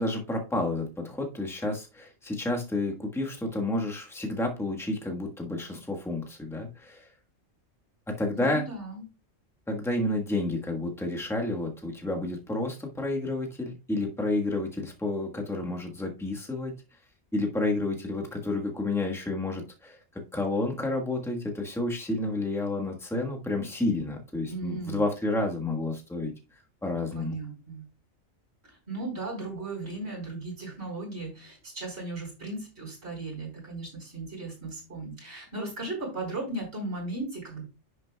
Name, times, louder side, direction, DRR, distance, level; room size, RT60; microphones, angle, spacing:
voice 1, 0.0-7.1 8.1-8.6 9.7-16.7 17.3-20.0 20.3-26.3 26.8-27.4, left 2 dB, ahead, 1 dB, 1.2 m, -30 dB
voice 2, 8.3-9.0 24.5-25.0 27.1-27.8 28.6-37.6, right 2 dB, 55° right, -1 dB, 4.5 m, -36 dB
10.0 x 6.5 x 2.3 m, 0.29 s
omnidirectional pair, 1.3 m